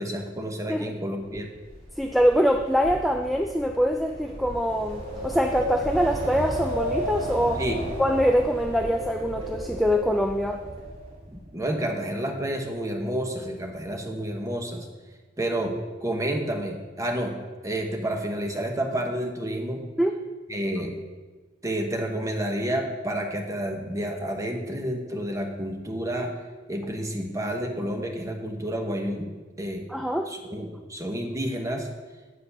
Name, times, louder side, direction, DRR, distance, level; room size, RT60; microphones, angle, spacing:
voice 1, 0.0-1.5 7.6-7.8 11.3-14.9 15.4-17.4 17.6-19.8 20.5-21.0 21.6-26.3 26.7-29.3 29.6-29.9 30.3-31.9, right 1 dB, 15° right, 3 dB, 1.0 m, -30 dB
Wind, 1.3-11.4, equal, 35° right, 2.6 m, -34 dB
voice 2, 2.0-7.6 8.0-10.6 20.0-20.2 29.9-30.3, equal, ahead, 4 dB, 0.3 m, -24 dB
8.2 x 5.1 x 6.6 m, 1.3 s
head